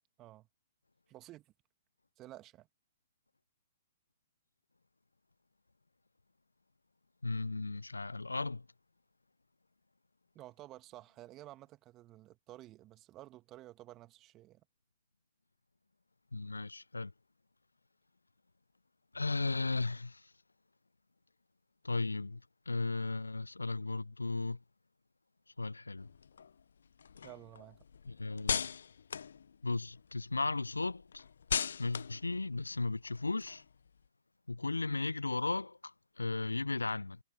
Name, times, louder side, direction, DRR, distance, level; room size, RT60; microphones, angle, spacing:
voice 1, 1.1-1.5 2.2-2.7 10.3-14.6 27.2-27.8, right 15 dB, 25° right, 2.0 m, -52 dB
voice 2, 7.2-8.6 16.3-17.1 19.1-20.3 21.8-22.4 22.7-24.6 25.6-26.1 28.1-28.6 29.6-31.2 31.8-33.6 34.5-37.2, left 3 dB, 80° left, 0.6 m, -35 dB
sound 1, 26.0-30.1 30.5-34.0, left 7 dB, 65° left, 1.1 m, -40 dB
figure-of-eight pair, 115°, 0 cm